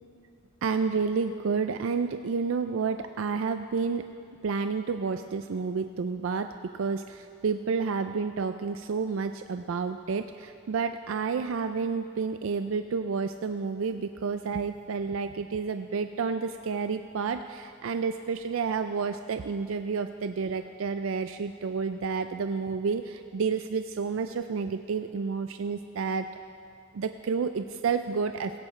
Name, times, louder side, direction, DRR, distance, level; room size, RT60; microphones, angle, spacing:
voice 1, 0.6-4.0 4.4-6.5 6.7-26.3 26.9-28.6, right 5 dB, 75° right, 8 dB, 0.4 m, -30 dB
17.0 x 16.5 x 3.3 m, 2.5 s
head